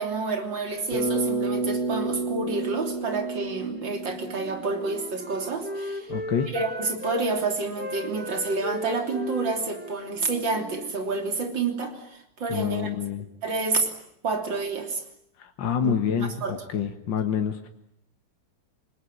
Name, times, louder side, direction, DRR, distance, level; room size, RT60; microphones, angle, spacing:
voice 1, 0.0-6.1 6.5-12.9 13.4-13.9 14.2-15.0 15.8-16.5, right 3 dB, 80° right, 5 dB, 3.9 m, -29 dB
Bass guitar, 0.9-5.0, right 3 dB, 40° right, 7.0 m, -30 dB
Wind instrument woodwind instrument, 4.3-7.3 7.7-11.6, equal, 5° right, 1.5 m, -37 dB
voice 2, 6.1-6.5 12.5-13.2 15.4-17.7, left 7 dB, 75° left, 6 dB, 2.1 m, -27 dB
27.5 x 20.5 x 9.8 m, 0.77 s
omnidirectional pair, 2.0 m